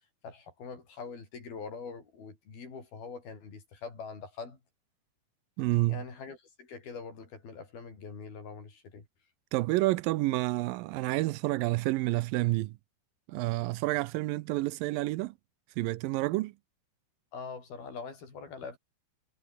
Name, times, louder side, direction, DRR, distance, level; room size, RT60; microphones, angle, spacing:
voice 1, 0.2-4.6 5.9-9.1 17.3-18.8, left 5 dB, 65° left, 8.0 m, -43 dB
voice 2, 5.6-6.0 9.5-12.8 13.3-15.4 15.8-16.5, right 19 dB, 80° right, 2.1 m, -29 dB
omnidirectional pair, 4.6 m